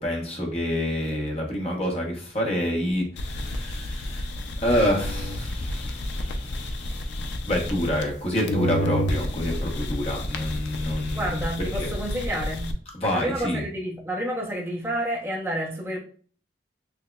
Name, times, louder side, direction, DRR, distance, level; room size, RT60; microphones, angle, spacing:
voice 1, 0.0-4.3 4.6-11.9 12.9-13.6, left 1 dB, 30° left, 0.9 m, -28 dB
sound 1, 3.2-8.2 8.5-12.7, left 1 dB, 65° left, 0.4 m, -30 dB
voice 2, 11.1-12.6 13.1-16.0, right 1 dB, 15° right, 0.8 m, -29 dB
5.8 x 2.1 x 2.2 m
head